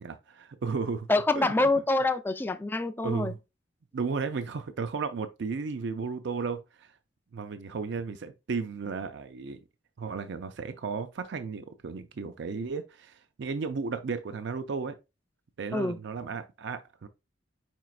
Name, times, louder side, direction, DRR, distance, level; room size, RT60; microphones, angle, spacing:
voice 1, 0.0-1.1 1.3-1.7 3.0-3.4 3.9-6.9 7.3-9.6 10.0-15.0 15.6-17.1, right 5 dB, 65° right, 0.4 m, -34 dB
voice 2, 1.1-3.3 15.7-16.0, left 2 dB, 10° left, 0.3 m, -26 dB
4.9 x 4.5 x 2.3 m
head